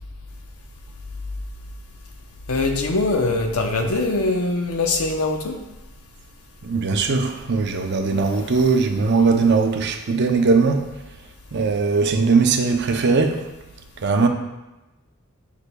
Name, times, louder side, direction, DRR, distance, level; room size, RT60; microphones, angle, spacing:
voice 1, 2.5-5.6 8.5-8.6, left 2 dB, 80° left, 3 dB, 0.8 m, -22 dB
voice 2, 6.6-10.9 11.5-13.4 14.0-14.3, right 4 dB, 50° right, 5 dB, 0.6 m, -19 dB
8.2 x 5.6 x 2.3 m, 1.0 s
head